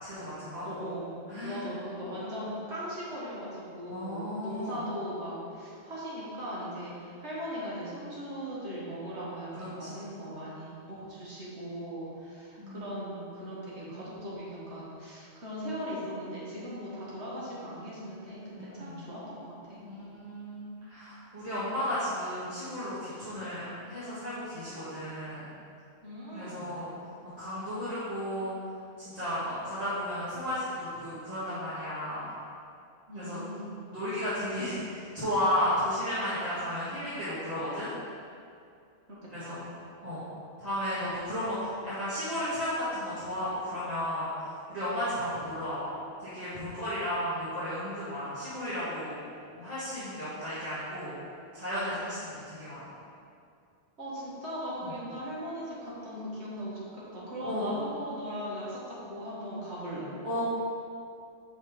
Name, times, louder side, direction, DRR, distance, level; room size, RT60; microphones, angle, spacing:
voice 1, 0.0-0.7 1.3-1.6 3.9-4.8 9.6-10.1 12.6-12.9 18.5-19.1 19.8-25.5 26.3-26.9 27.4-28.5 29.0-32.3 33.1-33.4 33.9-37.9 39.3-39.6 40.0-40.2 40.6-45.9 46.2-49.2 49.5-51.2 51.5-52.9 54.8-54.9 57.4-57.7 60.2-60.4, left 1 dB, 35° right, -14 dB, 1.8 m, -34 dB
voice 2, 0.6-1.1 1.4-20.1 26.0-26.7 33.1-33.8 39.1-39.5 54.0-60.1, equal, 65° right, -7 dB, 1.9 m, -39 dB
5.6 x 5.5 x 5.0 m, 2.4 s
omnidirectional pair, 1.2 m